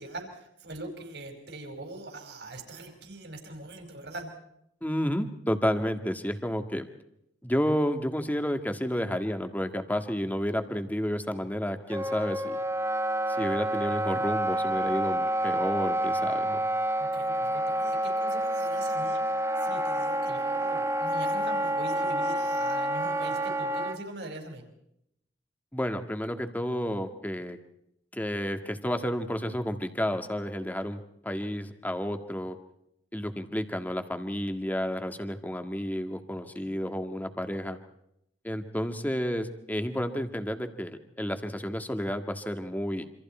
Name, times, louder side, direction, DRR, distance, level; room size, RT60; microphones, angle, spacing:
voice 1, 0.0-4.3 17.0-24.7 36.4-36.8, right 2 dB, 70° right, 4 dB, 5.2 m, -42 dB
voice 2, 4.8-6.9 7.4-12.6 13.4-16.6 25.7-27.6 28.1-32.6 33.1-37.8 38.4-43.0, equal, 10° left, 7 dB, 1.8 m, -31 dB
Wind instrument woodwind instrument, 11.9-24.0, right 1 dB, 15° right, 1.0 m, -28 dB
27.5 x 26.0 x 4.4 m, 0.78 s
head